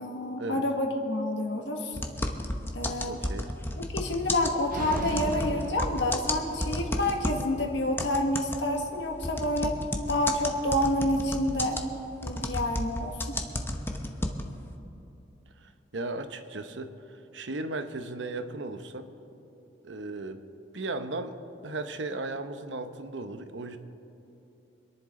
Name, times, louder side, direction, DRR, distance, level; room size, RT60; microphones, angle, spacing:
voice 1, 0.0-2.0 2.7-3.2 3.8-9.8 10.1-11.8 12.2-13.4, left 1 dB, 70° left, 2 dB, 1.7 m, -28 dB
sound 1, 2.0-7.5 8.0-14.7, left 1 dB, 15° left, 0.9 m, -32 dB
voice 2, 3.1-3.5 15.6-19.1 19.8-20.4 20.7-23.8, right 2 dB, 90° right, 9 dB, 0.9 m, -36 dB
sound 2, 4.7-6.9, right 2 dB, 50° right, 0.6 m, -36 dB
26.0 x 11.0 x 3.8 m, 2.9 s
head